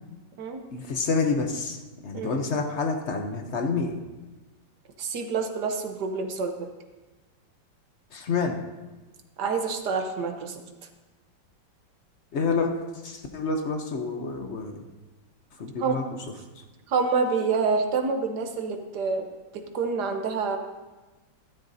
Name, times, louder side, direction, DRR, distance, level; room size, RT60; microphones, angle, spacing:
voice 1, 0.7-1.8 2.0-4.0 8.1-8.6 12.3-14.8 15.6-16.0, left 4 dB, 55° left, 4 dB, 0.8 m, -28 dB
voice 2, 2.1-2.4 5.0-6.7 9.4-10.6 15.8-16.0 16.9-19.3 19.5-20.6, right 4 dB, 60° right, 5 dB, 1.5 m, -27 dB
13.5 x 12.5 x 2.7 m, 1.2 s
omnidirectional pair, 2.2 m